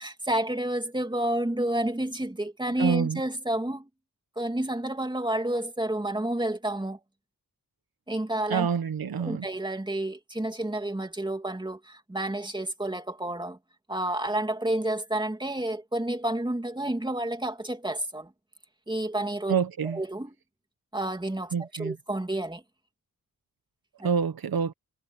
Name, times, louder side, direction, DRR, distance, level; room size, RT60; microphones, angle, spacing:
voice 1, 0.0-3.9 4.4-7.0 8.1-8.7 9.2-13.6 13.9-18.3 18.9-19.6 19.9-20.3 20.9-22.6 24.0-24.1, right 1 dB, 10° right, 2.9 m, -30 dB
voice 2, 2.8-3.2 8.5-9.5 19.5-20.0 21.5-22.0 24.0-24.7, right 6 dB, 80° right, 1.2 m, -27 dB
wide cardioid pair, 100°, 36 cm